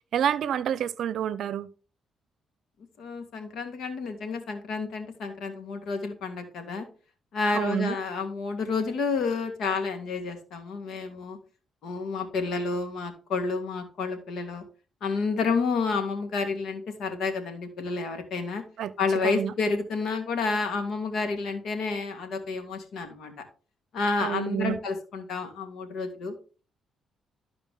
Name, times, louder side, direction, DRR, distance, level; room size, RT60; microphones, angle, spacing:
voice 1, 0.1-1.7 7.5-7.9 18.8-18.9 19.2-19.5 24.2-24.8, right 9 dB, 70° right, 0.6 m, -28 dB
voice 2, 3.0-6.9 7.3-11.4 11.8-14.6 15.0-18.6 19.0-23.3 23.9-26.3, left 4 dB, 70° left, 2.2 m, -30 dB
12.5 x 4.8 x 3.7 m
cardioid pair, 90°, 0 cm